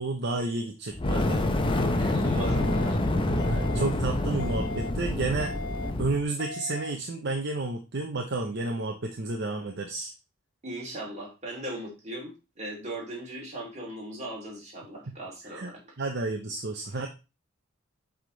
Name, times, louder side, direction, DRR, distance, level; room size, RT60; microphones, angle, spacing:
voice 1, 0.0-1.4 3.3-5.5 6.0-10.1 15.1-15.2 15.5-15.7 16.0-17.1, right 3 dB, 55° right, 3 dB, 0.8 m, -31 dB
Fire, 0.9-6.2, left 1 dB, 25° left, 0.8 m, -27 dB
voice 2, 2.0-3.0 10.6-15.9, right 1 dB, 35° right, -3 dB, 2.9 m, -38 dB
sound 1, 2.4-2.9 3.4-3.9 4.4-4.9 5.4-5.9 6.4-6.9, left 3 dB, 60° left, 0.7 m, -38 dB
7.9 x 3.6 x 3.9 m, 0.28 s
head